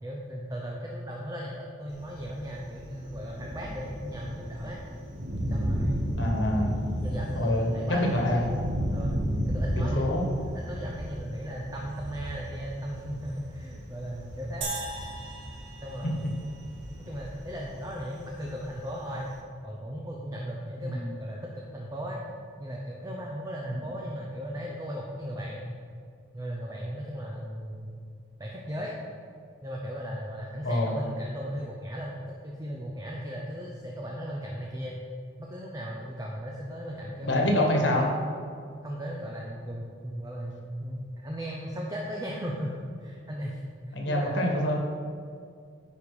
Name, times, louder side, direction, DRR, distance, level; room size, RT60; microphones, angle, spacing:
voice 1, 0.0-4.8 5.5-6.1 7.0-9.2 9.5-14.7 15.8-16.5 17.0-19.3 19.6-22.2 22.6-25.7 26.3-28.0 28.4-28.9 29.6-35.0 35.4-37.8 38.8-43.6 43.9-44.4, equal, 15° right, -2 dB, 0.7 m, -37 dB
Thunder, 1.9-19.4, equal, 55° right, 1.2 m, -34 dB
voice 2, 6.2-6.7 7.3-8.4 9.7-10.2 20.8-21.1 30.6-30.9 37.2-38.1 43.9-44.8, left 1 dB, 60° left, 0 dB, 1.4 m, -26 dB
sound 1, 14.6-17.0, right 2 dB, 75° right, 1.9 m, -38 dB
9.8 x 5.3 x 4.9 m, 2.3 s
head